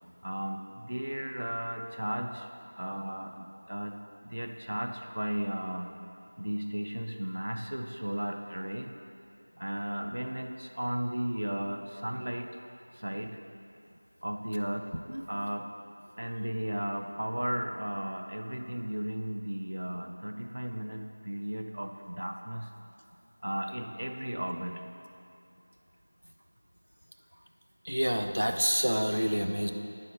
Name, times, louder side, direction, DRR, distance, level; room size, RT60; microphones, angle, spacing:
voice 1, 0.2-2.5 2.8-5.9 6.4-9.0 9.6-12.6 12.9-13.4 14.2-14.9 15.3-15.7 16.2-22.7 23.4-24.8, equal, 30° right, 5 dB, 0.4 m, -35 dB
voice 2, 27.8-29.7, equal, 70° right, 6 dB, 0.7 m, -28 dB
9.6 x 7.5 x 3.9 m, 2.7 s
figure-of-eight pair, 180°, 0 cm